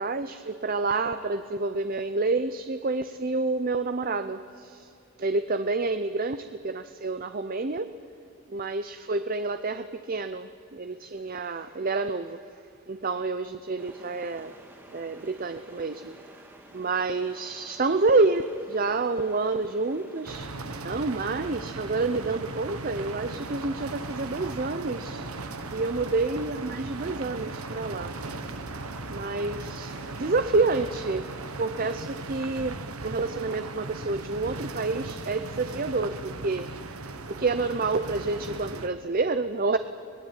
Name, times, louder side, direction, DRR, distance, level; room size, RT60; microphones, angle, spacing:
voice 1, 0.0-4.9 5.2-7.9 8.5-12.4 12.9-14.5 14.9-16.2 16.7-20.5 20.8-25.3 25.7-28.5 29.1-39.8, right 3 dB, 40° right, 10 dB, 0.6 m, -28 dB
sound 1, 13.8-32.1, right 1 dB, 10° right, 2.4 m, -51 dB
sound 2, 20.2-38.9, right 3 dB, 80° right, 1.5 m, -38 dB
24.0 x 19.0 x 9.1 m, 2.7 s
head